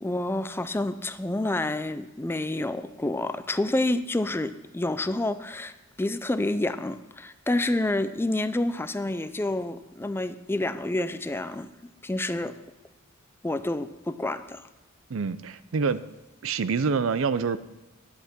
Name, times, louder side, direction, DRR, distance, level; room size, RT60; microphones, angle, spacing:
voice 1, 0.0-11.7 12.0-12.6 13.4-14.7, left 2 dB, 10° left, 12 dB, 0.4 m, -28 dB
voice 2, 15.1-16.0 16.4-17.6, right 5 dB, 70° right, 15 dB, 0.5 m, -26 dB
10.5 x 8.2 x 5.9 m, 1.1 s
head